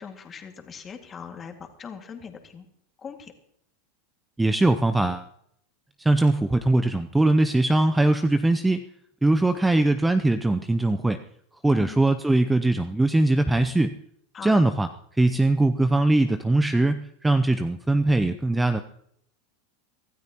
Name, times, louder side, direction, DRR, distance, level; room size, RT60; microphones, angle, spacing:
voice 1, 0.0-2.7 3.0-3.3 11.6-12.1 14.3-14.7, left 6 dB, 25° left, 4 dB, 2.0 m, -40 dB
voice 2, 4.4-5.3 6.0-8.8 9.2-11.2 11.6-13.9 14.4-14.9 15.1-18.8, right 2 dB, 5° right, 10 dB, 0.5 m, -21 dB
24.5 x 13.0 x 3.0 m, 0.72 s
supercardioid pair, 135°, 0 cm